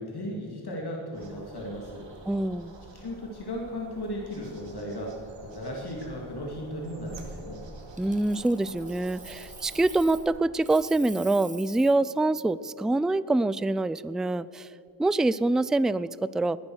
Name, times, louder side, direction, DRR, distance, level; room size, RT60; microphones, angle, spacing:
voice 1, 0.0-2.1 2.9-7.6, equal, 60° left, -1 dB, 2.6 m, -36 dB
sound 1, 1.1-10.5, right 2 dB, 80° right, 2.3 m, -47 dB
voice 2, 2.3-2.7 8.0-14.7 15.0-16.6, right 2 dB, ahead, 17 dB, 0.3 m, -25 dB
Coin (dropping), 7.9-10.3 10.6-12.0 14.9-15.1, right 3 dB, 15° right, 0.8 m, -47 dB
20.5 x 10.5 x 6.4 m, 2.9 s
cardioid pair, 65°, 44 cm